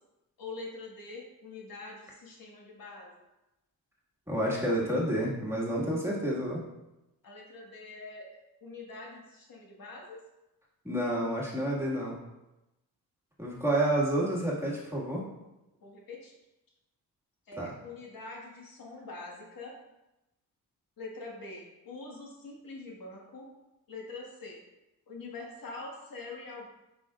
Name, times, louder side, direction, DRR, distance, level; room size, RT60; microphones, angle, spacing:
voice 1, 0.4-3.1 7.2-8.3 8.6-10.2 15.8-16.3 17.5-19.7 21.0-23.5 23.9-24.6 25.1-26.7, left 3 dB, 65° left, -2 dB, 1.7 m, -44 dB
voice 2, 4.3-6.6 10.8-12.2 13.4-15.3 17.6-17.7, right 1 dB, 5° right, -6 dB, 1.9 m, -29 dB
7.6 x 5.3 x 2.5 m, 0.96 s
cardioid pair, 75°, 37 cm